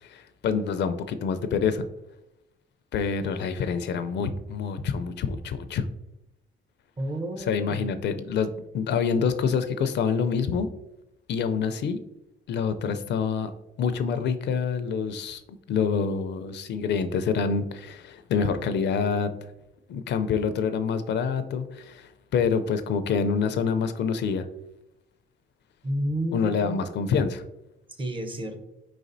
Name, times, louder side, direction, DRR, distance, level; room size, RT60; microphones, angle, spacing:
voice 1, 0.0-1.8 2.9-5.9 7.4-10.7 11.3-12.0 12.5-13.5 13.8-15.4 15.7-19.3 19.9-24.4 26.3-27.4, left 6 dB, 60° left, 10 dB, 0.4 m, -26 dB
voice 2, 7.0-7.9 25.8-26.8 28.0-28.6, right 1 dB, 25° right, 7 dB, 0.7 m, -31 dB
4.6 x 4.1 x 2.6 m, 0.86 s
cardioid pair, 90°, 20 cm